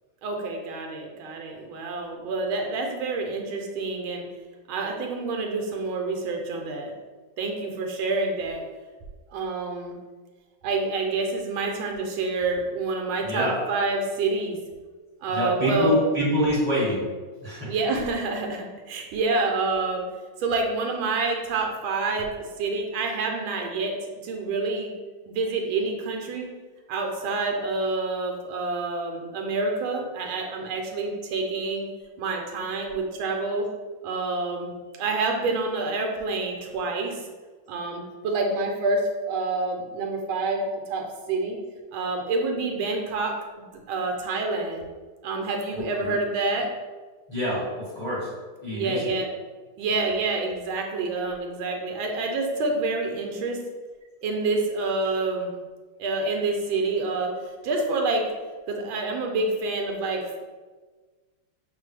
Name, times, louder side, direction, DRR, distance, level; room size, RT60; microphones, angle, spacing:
voice 1, 0.2-4.2 4.7-6.9 7.4-8.6 9.3-10.0 10.6-14.6 15.2-16.0 17.7-20.0 20.4-22.3 22.6-23.9 24.2-24.9 25.3-26.5 26.9-31.8 32.2-33.7 34.0-37.2 37.7-40.6 40.9-41.6 41.9-43.3 43.9-44.8 45.2-46.7 48.7-49.3 49.8-53.6 54.2-55.5 56.0-57.3 57.6-58.3 58.7-60.4, right 3 dB, 80° right, 2 dB, 1.4 m, -27 dB
voice 2, 15.3-17.1 17.4-17.7 45.7-46.1 47.3-48.3 48.6-49.1, equal, 15° left, -9 dB, 1.2 m, -26 dB
6.2 x 2.2 x 3.2 m, 1.4 s
omnidirectional pair, 2.3 m